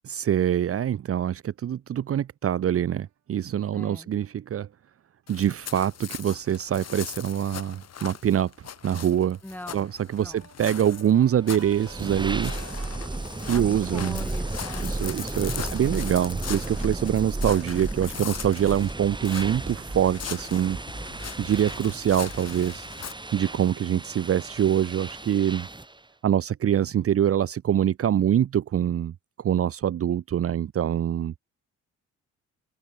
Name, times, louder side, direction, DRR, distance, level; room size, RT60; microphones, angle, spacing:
voice 1, 0.0-4.7 5.3-8.5 8.8-9.4 9.7-12.9 13.5-14.2 14.8-20.8 21.4-22.9 23.3-25.7 26.2-31.3, right 10 dB, 50° right, 0.9 m, -25 dB
voice 2, 3.7-4.1 9.4-9.9 10.2-10.5 13.5-13.6 13.9-14.9 15.5-16.3, left 1 dB, 5° left, 7.3 m, -42 dB
sound 1, 5.3-23.1, left 9 dB, 55° left, 5.1 m, -40 dB
sound 2, 8.3-14.1, right 10 dB, 65° right, 7.9 m, -51 dB
sound 3, 11.4-26.0, right 2 dB, 15° right, 7.5 m, -34 dB
open air
cardioid pair, 90°, 30 cm